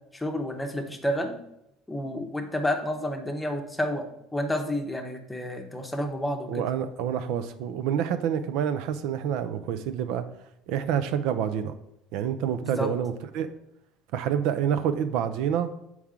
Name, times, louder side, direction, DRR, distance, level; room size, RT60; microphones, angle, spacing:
voice 1, 0.1-1.3 1.9-4.0 4.3-6.6 12.6-12.9, left 1 dB, 5° left, 4 dB, 0.8 m, -30 dB
voice 2, 6.5-10.3 10.7-11.7 12.1-13.5 14.1-15.7, right 9 dB, 70° right, 10 dB, 0.5 m, -27 dB
7.1 x 4.7 x 3.6 m, 0.80 s
cardioid pair, 140°, 0 cm